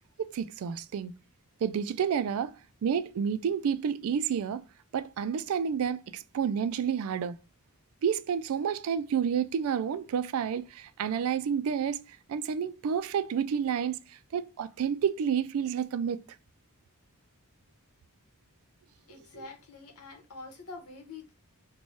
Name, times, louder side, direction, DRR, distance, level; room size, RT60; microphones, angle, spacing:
voice 1, 0.2-1.1 1.6-2.5 2.8-4.6 4.9-7.4 8.0-14.0 14.3-16.2, right 7 dB, 70° right, 0.3 m, -30 dB
voice 2, 19.0-21.3, left 3 dB, 80° left, 0.9 m, -46 dB
3.1 x 2.2 x 4.0 m
head